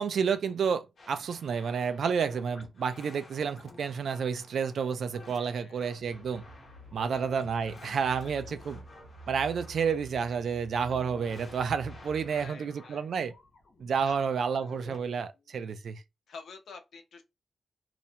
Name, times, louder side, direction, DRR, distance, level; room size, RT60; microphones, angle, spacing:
voice 1, 0.0-6.5 6.9-8.8 9.3-13.4 13.8-16.0, right 6 dB, 75° right, 0.3 m, -30 dB
sound 1, 1.0-15.0, left 2 dB, 55° left, 0.8 m, -53 dB
voice 2, 5.4-5.9 7.1-7.2 12.3-13.1 14.0-14.3 15.6-15.7 16.3-17.2, left 4 dB, 85° left, 0.6 m, -48 dB
sound 2, 6.0-12.5, right 1 dB, 55° right, 1.0 m, -49 dB
2.3 x 2.1 x 2.7 m
wide cardioid pair, 110°, 0 cm